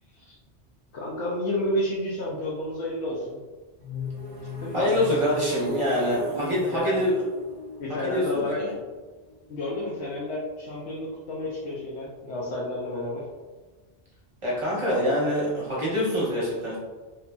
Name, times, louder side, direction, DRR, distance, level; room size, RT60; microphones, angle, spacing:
voice 1, 0.9-3.4 4.6-4.9 5.9-6.0 6.3-6.9 7.8-8.6 9.5-13.2, left 1 dB, 80° left, -5 dB, 0.9 m, -31 dB
sound 1, 3.8-9.6, left 2 dB, 10° left, 0.8 m, -37 dB
voice 2, 4.7-7.2 7.9-8.7 14.4-16.8, equal, 30° right, -6 dB, 0.9 m, -25 dB
2.9 x 2.5 x 2.2 m, 1.3 s
omnidirectional pair, 1.1 m